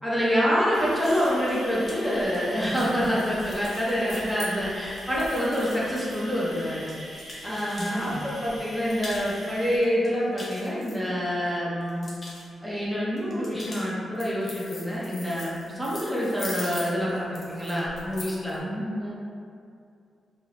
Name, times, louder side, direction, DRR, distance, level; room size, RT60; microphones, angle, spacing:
voice 1, 0.0-6.9 7.4-12.1 12.6-18.6, equal, 5° left, -7 dB, 0.7 m, -26 dB
sound 1, 0.7-9.8, equal, 45° right, 0.8 m, -44 dB
sound 2, 1.0-8.1 8.5-9.5 9.8-11.5 11.8-12.4 13.2-18.6, left 1 dB, 45° left, 0.6 m, -42 dB
voice 2, 7.8-8.2 18.6-19.1, equal, 25° right, -6 dB, 0.4 m, -33 dB
2.4 x 2.0 x 2.9 m, 2.4 s
cardioid pair, 65°, 0 cm